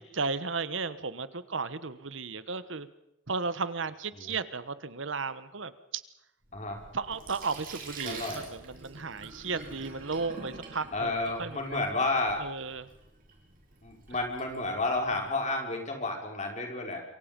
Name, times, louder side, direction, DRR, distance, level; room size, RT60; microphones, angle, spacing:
voice 1, 0.0-2.9 3.3-6.0 6.9-11.1 11.4-11.8 12.4-12.9, right 4 dB, 70° right, 14 dB, 1.3 m, -34 dB
Sink (filling or washing), 6.4-15.2, right 3 dB, 45° right, 6.5 m, -47 dB
voice 2, 6.5-6.8 8.0-8.5 10.9-12.4 13.8-17.0, left 2 dB, 35° left, 2 dB, 5.4 m, -31 dB
27.0 x 23.5 x 5.4 m, 0.84 s
head